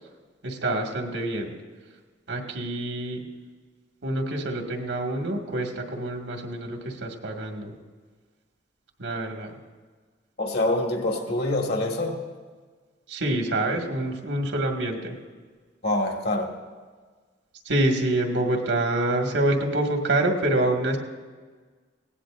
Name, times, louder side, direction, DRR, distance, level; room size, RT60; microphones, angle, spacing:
voice 1, 0.4-1.5 2.3-3.2 4.0-7.8 9.0-9.5 13.1-15.2 17.6-21.0, right 1 dB, 85° right, 1 dB, 1.9 m, -26 dB
voice 2, 10.4-12.2 15.8-16.6, left 2 dB, 60° left, 1 dB, 1.8 m, -25 dB
19.5 x 17.5 x 2.6 m, 1.5 s
head